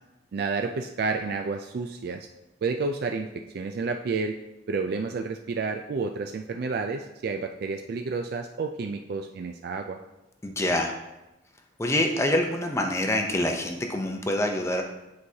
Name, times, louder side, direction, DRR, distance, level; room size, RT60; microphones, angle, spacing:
voice 1, 0.3-2.3 2.6-3.3 3.5-4.4 4.7-10.0, right 4 dB, 50° right, 5 dB, 0.3 m, -30 dB
voice 2, 10.4-10.9 11.8-14.8, left 1 dB, 15° left, 3 dB, 0.6 m, -26 dB
8.5 x 4.7 x 2.8 m, 0.97 s
head